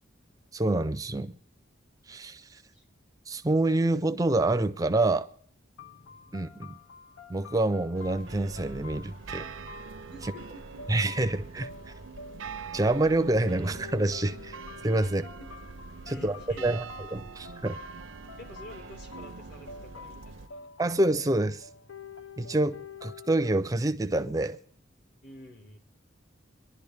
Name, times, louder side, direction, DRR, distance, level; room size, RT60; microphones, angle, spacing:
voice 1, 0.5-1.3 2.1-2.6 3.3-5.3 6.3-6.8 7.3-9.5 10.9-11.7 12.7-14.6 14.8-15.2 16.1-16.4 16.6-16.8 17.1-17.8 20.8-21.7 22.4-24.6, right 2 dB, 15° right, 0.5 m, -27 dB
sound 1, 5.8-23.6, left 5 dB, 85° left, 0.7 m, -48 dB
sound 2, 7.9-20.5, right 5 dB, 80° right, 0.6 m, -44 dB
voice 2, 10.1-11.0 15.0-15.5 16.0-16.8 18.4-20.7 25.2-25.8, left 1 dB, 50° left, 2.0 m, -49 dB
26.5 x 11.5 x 3.4 m
head